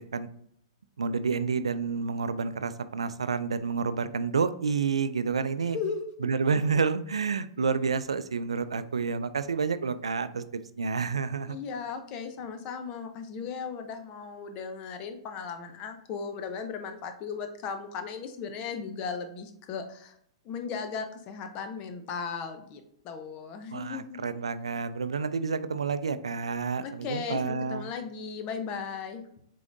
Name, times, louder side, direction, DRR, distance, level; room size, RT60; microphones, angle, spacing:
voice 1, 1.0-5.8 6.2-10.4 10.8-11.6 23.7-27.9, right 5 dB, 90° right, 13 dB, 0.3 m, -29 dB
voice 2, 5.7-6.1 11.5-20.1 20.4-24.2 26.8-29.2, left 6 dB, 35° left, 7 dB, 0.7 m, -36 dB
5.0 x 3.7 x 2.6 m, 0.68 s
hypercardioid pair, 120°, 3 cm